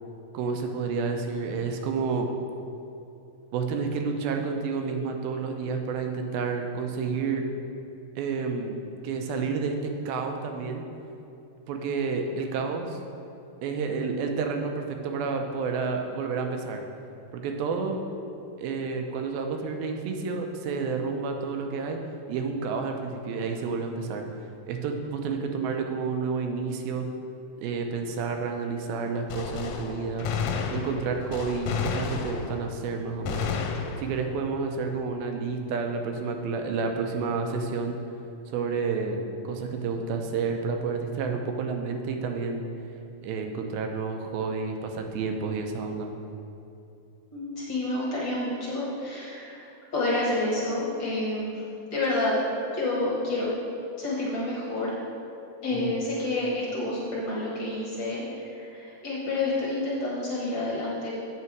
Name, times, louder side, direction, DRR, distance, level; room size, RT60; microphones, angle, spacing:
voice 1, 0.3-2.3 3.5-7.5 8.2-8.8 9.0-10.8 11.7-13.0 13.6-16.8 17.3-18.0 18.6-22.0 22.3-24.2 24.7-27.1 27.6-30.3 30.7-33.6 34.0-38.0 38.5-39.2 39.4-42.6 43.2-46.1 55.7-56.0, right 5 dB, 85° right, 4 dB, 2.6 m, -30 dB
Gunshot gunfire, 29.3-32.8 33.3-34.4, left 6 dB, 80° left, 2.0 m, -31 dB
voice 2, 47.3-49.7 49.9-51.6 51.9-52.3 52.7-53.5 54.0-54.9 55.6-61.1, left 2 dB, 60° left, -6 dB, 1.2 m, -29 dB
8.4 x 6.0 x 4.6 m, 2.7 s
omnidirectional pair, 4.1 m